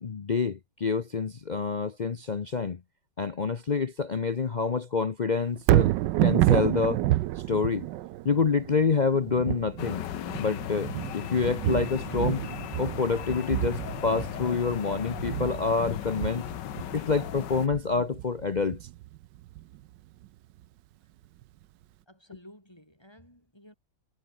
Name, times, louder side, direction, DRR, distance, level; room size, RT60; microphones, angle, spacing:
voice 1, 0.0-2.8 3.2-5.9 6.2-7.0 7.5-7.9 8.2-10.0 10.4-12.4 12.8-16.5 16.9-18.8, left 5 dB, 55° left, 0.5 m, -27 dB
Thunder, 5.6-19.8 20.2-20.3, right 15 dB, 85° right, 1.3 m, -29 dB
sound 1, 9.8-17.7, left 11 dB, 80° left, 1.6 m, -37 dB
voice 2, 22.1-23.7, equal, 15° left, 6.7 m, -53 dB
omnidirectional pair, 1.9 m